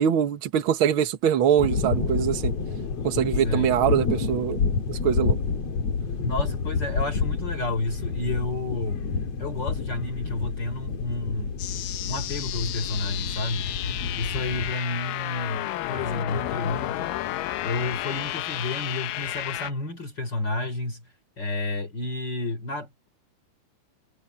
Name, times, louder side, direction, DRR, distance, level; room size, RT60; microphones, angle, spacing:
voice 1, 0.0-2.5 3.0-4.6 5.0-5.4, right 9 dB, 60° right, 1.4 m, -23 dB
sound 1, 1.6-14.7, left 5 dB, 45° left, 3.1 m, -29 dB
voice 2, 3.4-3.7 6.2-9.1 9.4-11.6 12.0-13.7 14.2-17.1 17.6-23.1, left 2 dB, 30° left, 3.7 m, -31 dB
sound 2, 11.6-19.7, left 14 dB, 75° left, 2.4 m, -32 dB
omnidirectional pair, 4.1 m